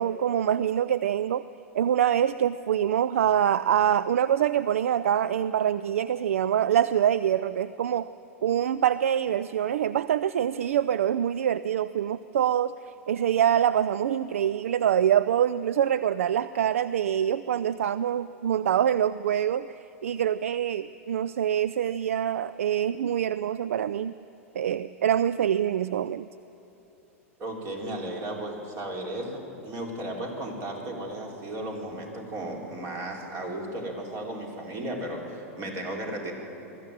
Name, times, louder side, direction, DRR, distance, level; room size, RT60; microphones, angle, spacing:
voice 1, 0.0-1.4 1.7-8.1 8.4-12.7 13.1-24.1 24.6-26.3, right 10 dB, 70° right, 16 dB, 0.4 m, -25 dB
voice 2, 27.4-36.3, right 1 dB, 40° right, 0 dB, 4.3 m, -35 dB
21.5 x 14.0 x 9.1 m, 3.0 s
figure-of-eight pair, 95°, 8 cm